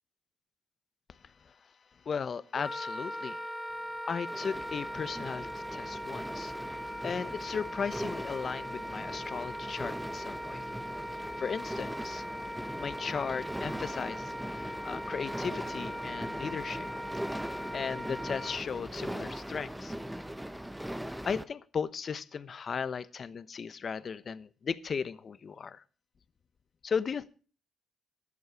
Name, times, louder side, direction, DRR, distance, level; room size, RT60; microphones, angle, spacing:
voice 1, 2.1-3.4 4.1-10.6 11.4-12.2 12.8-14.3 14.8-16.9 17.7-19.9 21.2-25.8 26.8-27.3, left 6 dB, 45° left, 15 dB, 0.9 m, -36 dB
Wind instrument woodwind instrument, 2.5-18.6, equal, 10° left, 1.3 m, -40 dB
sound 1, 4.3-21.4, equal, 5° right, 0.8 m, -40 dB
13.5 x 11.0 x 4.7 m, 0.38 s
cardioid pair, 90°, 0 cm